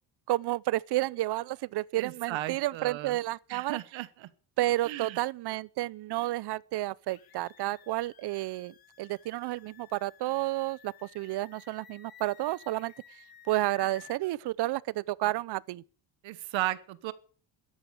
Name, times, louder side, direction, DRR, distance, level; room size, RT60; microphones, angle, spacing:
voice 1, 0.3-3.8 4.6-12.9 13.5-15.8, right 16 dB, 60° right, 0.7 m, -31 dB
voice 2, 1.9-3.2 3.5-4.3 4.8-5.2 16.2-17.1, right 16 dB, 75° right, 1.4 m, -35 dB
sound 1, 7.1-14.2, left 9 dB, 50° left, 2.6 m, -55 dB
13.5 x 11.0 x 8.5 m
cardioid pair, 130°, 46 cm